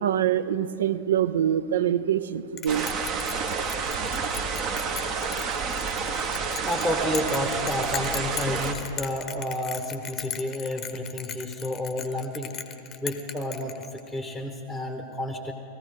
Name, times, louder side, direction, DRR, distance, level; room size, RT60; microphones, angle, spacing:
voice 1, 0.0-2.9, right 10 dB, 65° right, 16 dB, 0.5 m, -24 dB
Bell, 2.6-14.2, left 9 dB, 30° left, 0.8 m, -38 dB
sound 1, 2.7-8.7, right 5 dB, 35° right, 1.0 m, -29 dB
voice 2, 6.6-12.6 13.0-15.5, left 1 dB, 5° right, 4 dB, 1.1 m, -30 dB
18.5 x 14.5 x 4.8 m, 2.6 s
figure-of-eight pair, 90°, 0 cm